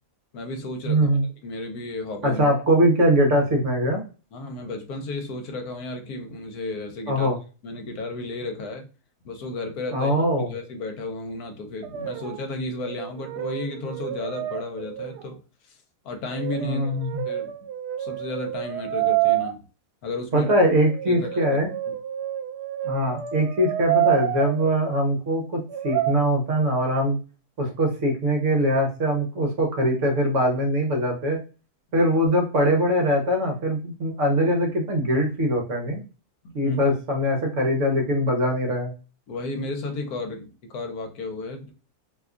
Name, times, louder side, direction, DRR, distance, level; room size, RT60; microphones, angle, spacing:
voice 1, 0.3-1.1 1.4-2.4 4.3-7.3 7.6-8.9 9.2-10.1 10.5-15.4 15.7-15.8 16.0-17.0 17.2-17.5 18.0-19.6 20.0-20.5 21.1-21.6 21.8-21.9 36.6-36.8 39.3-41.7, left 2 dB, 70° left, 5 dB, 1.1 m, -33 dB
voice 2, 0.9-1.2 2.2-4.0 7.1-7.4 9.9-10.5 16.6-17.2 20.3-21.7 22.8-27.2 27.6-31.4 31.9-36.0 36.5-38.9, equal, 55° right, 1 dB, 1.0 m, -22 dB
Brass instrument, 11.8-12.5 12.8-15.3 16.3-19.5 20.9-24.7 25.7-26.1, right 13 dB, 80° right, 1.1 m, -28 dB
2.8 x 2.3 x 3.5 m, 0.34 s
omnidirectional pair, 1.7 m